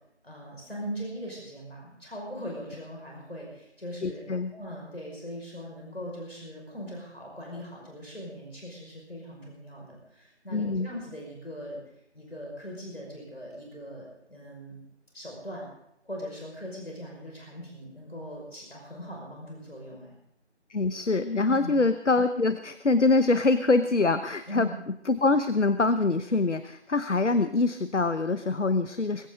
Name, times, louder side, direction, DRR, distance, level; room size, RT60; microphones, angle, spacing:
voice 1, 0.2-4.2 4.5-11.8 12.1-14.7 15.1-15.7 16.0-20.1 21.5-21.7 24.5-24.7, equal, 60° left, -1 dB, 5.6 m, -40 dB
voice 2, 4.0-4.5 10.5-10.9 20.7-24.7 25.1-29.3, left 3 dB, 85° left, 11 dB, 1.0 m, -24 dB
21.5 x 15.5 x 3.8 m, 0.75 s
figure-of-eight pair, 180°, 35 cm